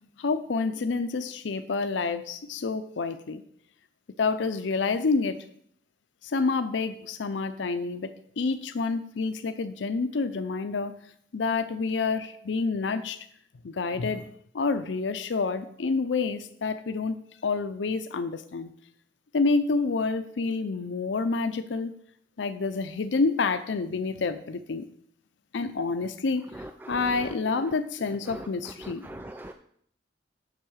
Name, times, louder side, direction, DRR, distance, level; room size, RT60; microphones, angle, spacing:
voice 1, 0.2-3.4 4.2-5.4 6.2-10.9 11.3-13.2 13.6-14.3 14.5-17.2 17.4-18.7 19.3-21.9 22.4-24.9 25.5-29.1, left 4 dB, 85° left, 10 dB, 0.5 m, -28 dB
voice 2, 26.5-27.1 28.3-28.5 28.8-29.5, right 1 dB, 10° right, 6 dB, 0.4 m, -41 dB
7.4 x 5.7 x 6.3 m, 0.65 s
head